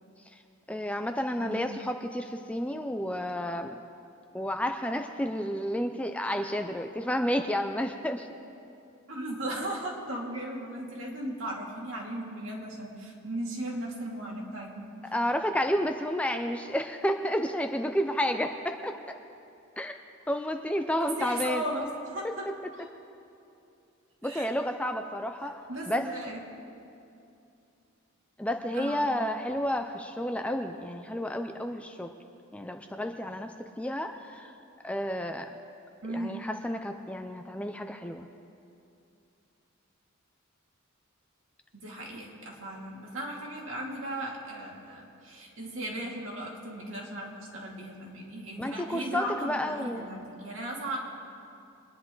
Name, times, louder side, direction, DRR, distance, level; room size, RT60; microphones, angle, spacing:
voice 1, 0.7-3.8 4.3-8.3 15.1-19.2 19.8-19.9 20.3-21.6 22.2-22.3 24.2-25.6 25.9-26.1 28.4-32.1 32.5-34.5 34.8-35.5 36.1-38.3 48.6-50.0, equal, 5° left, 6 dB, 0.4 m, -31 dB
voice 2, 1.4-1.7 9.1-15.1 21.0-22.9 24.2-24.5 25.7-26.4 28.7-29.1 36.0-36.5 41.7-51.0, right 1 dB, 65° right, -2 dB, 2.5 m, -37 dB
23.5 x 10.5 x 3.9 m, 2.6 s
head